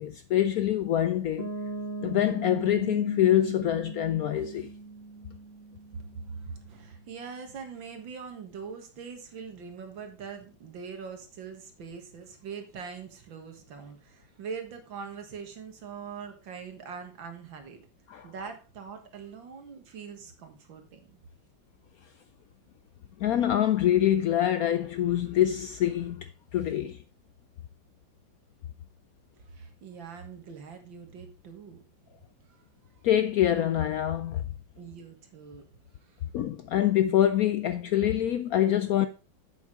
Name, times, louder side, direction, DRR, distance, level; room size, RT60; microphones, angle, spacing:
voice 1, 0.0-1.5 2.0-4.7 18.1-18.3 23.2-27.0 33.0-34.4 36.3-39.1, left 11 dB, 75° left, 0.8 m, -25 dB
Piano, 1.4-7.1, right 3 dB, 40° right, 2.2 m, -40 dB
voice 2, 5.9-17.8 18.2-21.1 29.4-31.8 32.5-32.6 34.8-35.6 36.0-36.2, right 6 dB, 85° right, 2.3 m, -42 dB
8.1 x 7.2 x 4.6 m
omnidirectional pair, 2.0 m